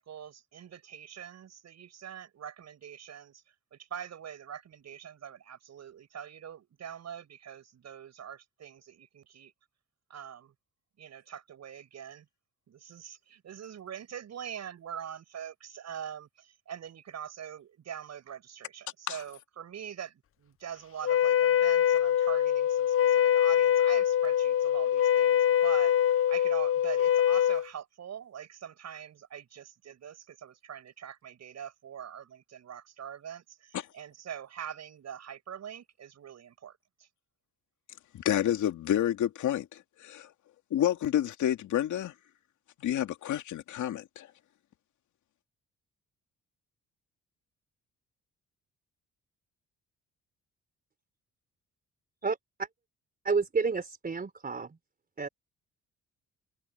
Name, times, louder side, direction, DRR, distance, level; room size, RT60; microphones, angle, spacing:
voice 1, 0.0-9.5 10.1-10.5 11.0-12.3 12.7-37.1, right 9 dB, 60° right, 7.9 m, -43 dB
Wind instrument woodwind instrument, 21.0-27.7, left 10 dB, 45° left, 0.7 m, -24 dB
voice 2, 38.1-40.3 40.7-42.1 42.8-44.3, left 11 dB, 75° left, 2.6 m, -29 dB
voice 3, 53.2-54.8 55.2-55.3, right 4 dB, 30° right, 3.7 m, -30 dB
cardioid pair, 90°, 30 cm